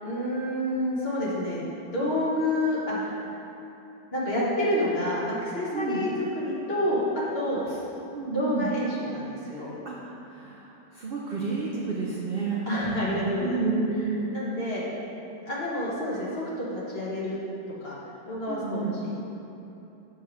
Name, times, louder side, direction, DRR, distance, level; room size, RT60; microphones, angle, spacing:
voice 1, 0.0-1.6 1.9-3.2 4.1-7.6 8.3-9.7 12.7-13.6 14.3-14.8 15.5-17.4 17.8-17.9 18.3-19.1, left 1 dB, 40° left, -6 dB, 1.4 m, -28 dB
voice 2, 5.7-6.0 7.5-7.8 8.1-8.8 9.5-14.3 18.5-19.0, right 4 dB, 60° right, -4 dB, 0.5 m, -31 dB
5.8 x 4.8 x 6.1 m, 3.0 s
omnidirectional pair, 1.8 m